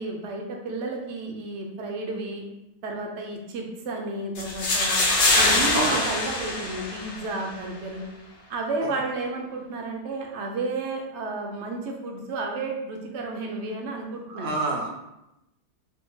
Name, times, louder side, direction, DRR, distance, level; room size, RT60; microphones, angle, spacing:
voice 1, 0.0-2.4 2.8-5.1 5.4-8.1 8.5-14.5, right 2 dB, 70° right, 1 dB, 0.6 m, -32 dB
sound 1, 4.3-7.4, left 2 dB, 70° left, 1.1 m, -23 dB
voice 2, 14.3-14.9, right 2 dB, 85° right, 1 dB, 1.2 m, -28 dB
3.5 x 2.3 x 3.0 m, 0.89 s
omnidirectional pair, 1.6 m